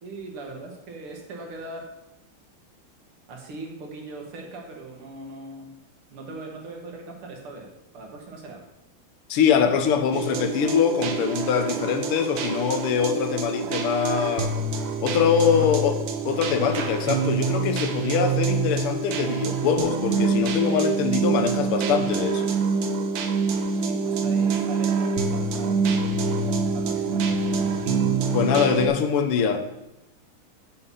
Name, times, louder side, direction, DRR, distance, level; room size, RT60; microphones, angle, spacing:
voice 1, 0.0-1.9 3.3-5.7 6.1-7.7 7.9-8.6 15.5-15.8 23.7-25.8 26.2-28.0, right 2 dB, 80° right, 1 dB, 2.3 m, -40 dB
voice 2, 9.3-14.5 15.0-15.9 16.2-22.5 28.3-29.6, left 7 dB, 90° left, 6 dB, 1.7 m, -23 dB
sound 1, 10.1-28.9, right 4 dB, 65° right, 1.1 m, -26 dB
6.7 x 5.6 x 5.5 m, 0.91 s
omnidirectional pair, 2.4 m